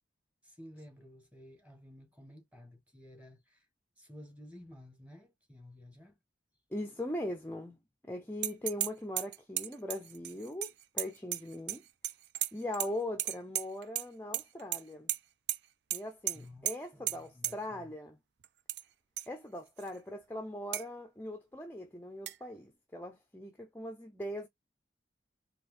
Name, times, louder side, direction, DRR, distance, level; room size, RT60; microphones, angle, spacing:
voice 1, 0.4-3.7 4.0-6.2 16.3-16.7 16.9-17.9, left 1 dB, 5° right, 1.4 m, -53 dB
voice 2, 6.7-11.8 12.5-15.1 15.9-18.2 19.3-24.5, left 1 dB, 10° left, 0.5 m, -40 dB
sound 1, 8.4-8.9 9.2-11.8 12.0-12.9 13.2-14.1 14.3-14.8 15.1-15.2 15.5-15.6 15.9-16.0 16.3-16.4 16.7-16.8 17.1-17.2 17.4-17.5 18.4-18.8 19.2-19.3 19.8-19.9 20.7-20.8 22.3-22.4, right 13 dB, 65° right, 0.4 m, -34 dB
4.4 x 3.0 x 3.1 m
head